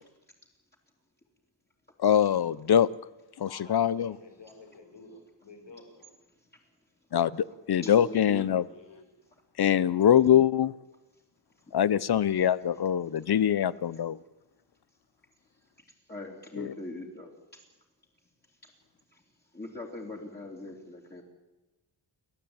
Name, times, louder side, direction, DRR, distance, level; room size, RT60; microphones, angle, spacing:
voice 1, 2.0-2.9 3.4-4.1 7.1-8.6 9.6-10.7 11.7-14.2 16.6-16.7, left 9 dB, 55° left, 0.7 m, -23 dB
voice 2, 3.5-6.2 8.6-9.0, left 3 dB, 75° left, 5.4 m, -51 dB
voice 3, 7.8-8.5 16.1-17.3 19.5-21.2, left 2 dB, 20° left, 3.1 m, -40 dB
30.0 x 12.5 x 8.8 m
wide cardioid pair, 150°, 45 cm